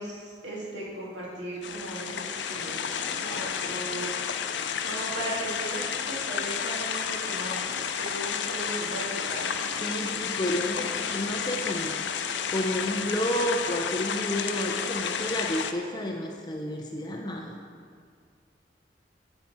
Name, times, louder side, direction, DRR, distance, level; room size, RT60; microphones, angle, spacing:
voice 1, 0.0-4.1 4.8-7.5 7.9-9.7 10.6-10.9, right 1 dB, 85° right, -6 dB, 2.3 m, -37 dB
sound 1, 1.6-15.7, left 7 dB, 80° left, 0.5 m, -31 dB
voice 2, 9.8-12.0 12.5-17.6, left 1 dB, 25° left, 0 dB, 0.6 m, -30 dB
8.3 x 8.0 x 4.3 m, 2.1 s
head